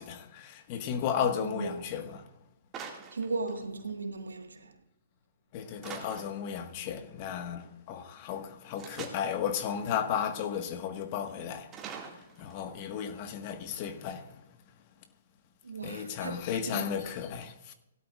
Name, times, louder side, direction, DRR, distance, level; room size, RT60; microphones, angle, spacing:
voice 1, 0.0-2.3 5.5-14.4 15.8-17.7, left 8 dB, 40° left, 1.5 m, -34 dB
voice 2, 1.4-1.8 3.1-4.7 15.6-16.4 16.6-16.9, right 3 dB, 85° right, 1.6 m, -36 dB
sound 1, 2.7-3.9 5.8-6.5 8.8-9.4 11.7-12.8, right 6 dB, 25° right, 2.0 m, -44 dB
17.0 x 12.0 x 2.4 m
hypercardioid pair, 130°, 0 cm